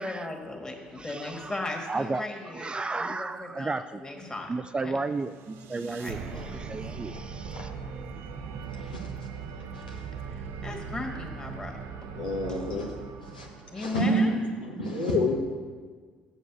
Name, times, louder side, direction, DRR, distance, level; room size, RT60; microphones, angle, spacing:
voice 1, 0.0-2.7 3.0-4.5 4.8-5.0 5.9-6.8 10.6-12.1 12.5-12.7 13.7-14.4, left 2 dB, 15° left, 1 dB, 1.9 m, -37 dB
voice 2, 1.0-2.2 2.5-4.0 4.5-6.2 6.4-7.7, right 3 dB, 20° right, 11 dB, 0.4 m, -33 dB
sound 1, 5.1-14.2, right 5 dB, 65° right, 0.7 m, -40 dB
voice 3, 8.7-9.1 9.9-10.0 12.1-12.9 13.3-13.5 13.7-14.3 14.6-15.4, left 1 dB, 90° left, -1 dB, 1.2 m, -28 dB
8.2 x 7.2 x 6.1 m, 1.6 s
hypercardioid pair, 55°, 5 cm